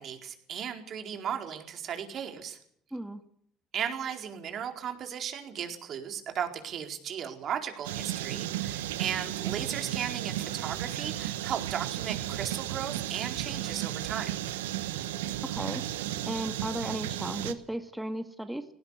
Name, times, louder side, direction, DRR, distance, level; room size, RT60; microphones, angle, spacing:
voice 1, 0.0-2.6 3.7-14.4, right 8 dB, 60° right, 5 dB, 4.3 m, -36 dB
sound 1, 7.8-17.5, right 13 dB, 90° right, 1.2 m, -34 dB
voice 2, 15.4-15.8 16.3-18.6, right 1 dB, 5° right, 7 dB, 2.3 m, -35 dB
18.5 x 18.5 x 8.3 m, 0.66 s
hypercardioid pair, 60°, 0 cm